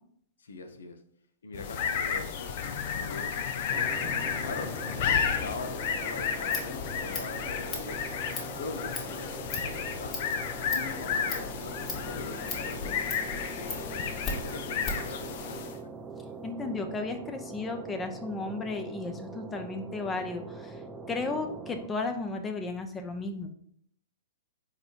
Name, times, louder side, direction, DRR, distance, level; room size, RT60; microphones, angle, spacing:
voice 1, 0.4-1.0 1.4-8.1 8.6-10.4 10.7-14.0 14.4-15.7, left 3 dB, 75° left, 7 dB, 0.9 m, -42 dB
sound 1, 1.5-15.8, left 7 dB, 55° left, 0.7 m, -32 dB
sound 2, 3.7-21.9, right 4 dB, 15° right, 0.6 m, -43 dB
Scissors, 6.2-15.2, left 4 dB, 35° left, 2.2 m, -40 dB
voice 2, 16.4-20.8 21.1-23.5, left 3 dB, 15° left, 6 dB, 0.8 m, -34 dB
4.9 x 4.3 x 5.2 m, 0.67 s
hypercardioid pair, 115°, 0 cm